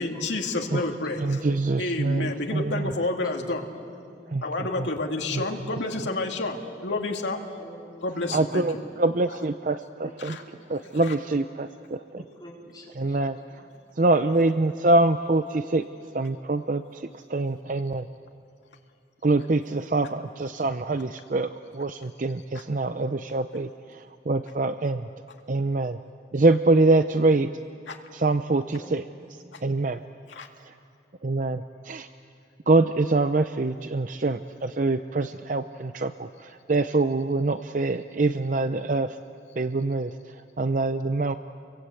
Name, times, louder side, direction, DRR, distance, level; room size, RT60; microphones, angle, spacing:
voice 1, 0.0-1.2 1.8-3.7 4.4-7.4 8.0-8.6 10.2-10.4 27.9-28.0 30.3-30.5, left 2 dB, 90° left, 2 dB, 2.3 m, -29 dB
voice 2, 0.5-2.0 3.0-3.4 3.8-5.0 7.0-7.1 7.6-8.8 9.4-9.5 10.0-10.6 12.2-13.3 13.6-13.7 14.2-14.3 14.6-14.9 28.5-29.0, equal, 20° left, -3 dB, 4.6 m, -46 dB
voice 3, 1.2-3.0 4.3-4.9 5.3-5.7 8.3-10.4 10.7-12.2 13.0-13.6 14.0-15.9 16.1-18.1 19.2-25.1 25.5-26.0 26.3-27.5 28.1-29.0 29.3-30.0 30.6-30.7 31.2-32.1 32.7-39.2 39.6-41.4, right 2 dB, 45° right, 10 dB, 0.6 m, -25 dB
29.5 x 23.5 x 8.3 m, 2.4 s
head